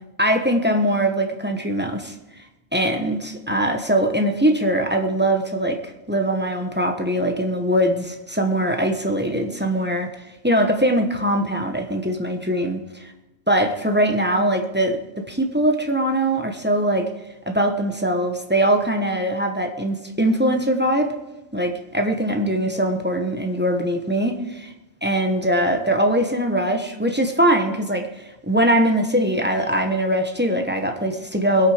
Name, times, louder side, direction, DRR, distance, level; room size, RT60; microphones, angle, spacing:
voice 1, 0.2-2.1 2.7-5.8 6.1-10.1 10.4-12.8 13.5-15.0 15.3-17.1 17.5-21.1 21.5-24.7 25.0-31.7, right 1 dB, 10° right, 4 dB, 0.9 m, -21 dB
21.5 x 8.4 x 5.0 m, 0.99 s
omnidirectional pair, 1.5 m